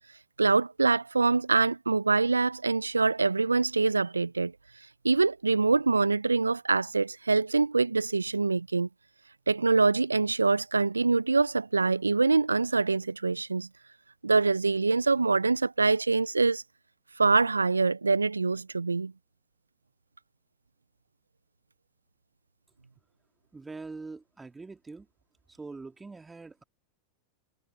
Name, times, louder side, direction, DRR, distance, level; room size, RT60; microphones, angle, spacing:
voice 1, 0.4-8.9 9.5-13.7 14.2-16.6 17.2-19.1, right 3 dB, 90° right, 0.4 m, -25 dB
voice 2, 23.5-25.1 25.6-26.6, right 3 dB, 15° right, 2.5 m, -43 dB
figure-of-eight pair, 90°, 0 cm